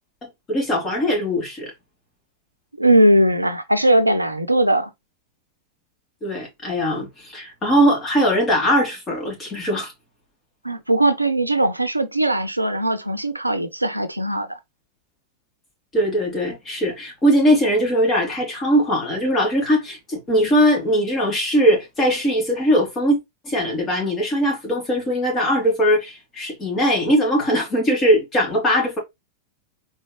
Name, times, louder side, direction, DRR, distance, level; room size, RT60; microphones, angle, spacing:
voice 1, 0.5-1.7 6.2-9.9 15.9-23.2 23.4-29.0, equal, 25° left, 2.8 m, -20 dB
voice 2, 2.8-4.9 10.6-14.6, right 1 dB, 85° right, 0.5 m, -19 dB
4.3 x 3.3 x 3.1 m
figure-of-eight pair, 90°, 0 cm